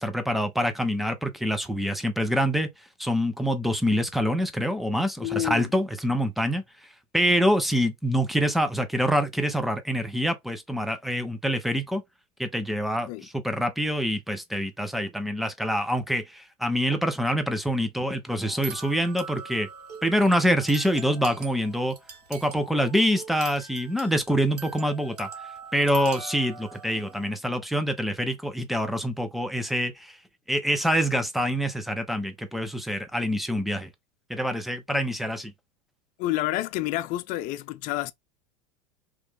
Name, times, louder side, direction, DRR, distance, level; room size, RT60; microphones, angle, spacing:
voice 1, 0.0-2.7 3.0-6.6 7.1-12.0 12.4-19.7 20.0-22.0 22.3-25.3 25.7-30.2 30.5-33.9 34.3-35.5, equal, ahead, 0.8 m, -26 dB
voice 2, 5.2-5.7 13.1-13.3 36.2-38.1, left 15 dB, 45° left, 0.4 m, -29 dB
sound 1, 18.4-27.3, right 5 dB, 90° right, 0.9 m, -43 dB
3.1 x 2.7 x 3.4 m
hypercardioid pair, 90°, 19 cm